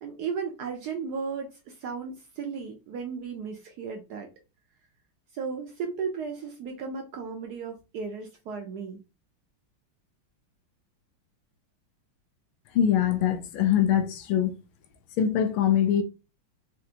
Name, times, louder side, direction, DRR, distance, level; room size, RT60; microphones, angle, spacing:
voice 1, 0.0-4.3 5.3-9.0, right 5 dB, 75° right, 0.9 m, -35 dB
voice 2, 12.7-14.5 15.2-16.0, left 9 dB, 85° left, 1.5 m, -23 dB
4.4 x 2.5 x 2.8 m
omnidirectional pair, 2.3 m